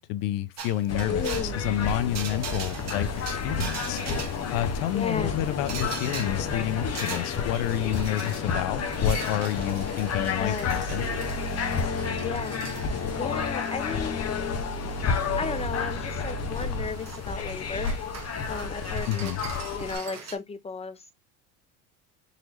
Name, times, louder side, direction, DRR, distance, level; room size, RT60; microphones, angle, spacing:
voice 1, 0.0-4.2 4.5-11.1 19.1-19.4, left 12 dB, 70° left, 0.8 m, -29 dB
sound 1, 0.6-20.4, right 6 dB, 35° right, 1.2 m, -42 dB
sound 2, 0.9-20.0, left 5 dB, 30° left, 1.0 m, -30 dB
voice 2, 1.1-1.6 4.9-5.4 10.4-10.7 12.2-12.8 13.2-14.2 15.3-18.0 18.4-19.3 19.7-21.1, left 5 dB, 15° left, 0.4 m, -34 dB
4.0 x 3.0 x 2.9 m
supercardioid pair, 100°, 47 cm